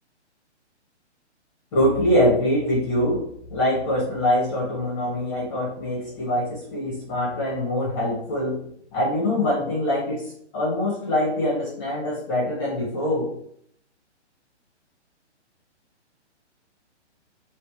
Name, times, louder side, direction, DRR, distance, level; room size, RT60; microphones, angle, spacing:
voice 1, 1.7-8.6 8.9-13.3, left 1 dB, 10° left, -5 dB, 0.7 m, -24 dB
3.3 x 2.9 x 4.5 m, 0.65 s
hypercardioid pair, 160°, 35 cm